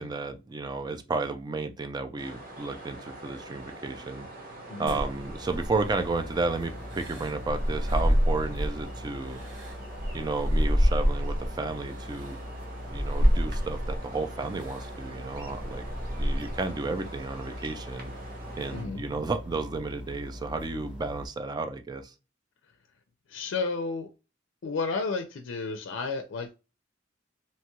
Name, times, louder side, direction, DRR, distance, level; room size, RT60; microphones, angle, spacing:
voice 1, 0.0-4.3 4.8-9.4 10.1-12.4 12.9-15.9 16.1-18.1 18.6-22.1, right 3 dB, 20° right, 0.3 m, -32 dB
sound 1, 2.2-18.8, right 1 dB, 50° right, 1.0 m, -44 dB
sound 2, 4.9-6.1 6.9-8.8 9.3-11.5 12.2-12.3 12.9-14.0 14.6-14.9 15.3-16.7, equal, 85° right, 1.0 m, -27 dB
sound 3, 5.4-21.3, left 1 dB, 5° right, 0.7 m, -42 dB
voice 2, 18.7-19.0 23.3-24.1 24.6-26.5, left 4 dB, 80° left, 0.4 m, -32 dB
2.9 x 2.3 x 2.9 m
head